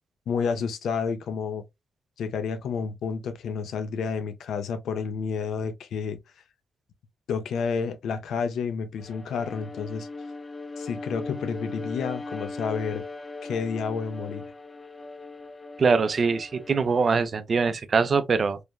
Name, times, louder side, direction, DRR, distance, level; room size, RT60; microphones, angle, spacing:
voice 1, 0.3-1.6 2.2-6.2 7.3-10.1 10.8-13.0 13.4-14.4, left 5 dB, 80° left, 0.4 m, -30 dB
Bowed string instrument, 9.0-17.4, left 3 dB, 20° left, 0.4 m, -38 dB
voice 2, 15.8-18.6, right 5 dB, 45° right, 0.4 m, -23 dB
3.2 x 2.1 x 2.2 m
cardioid pair, 90°, 0 cm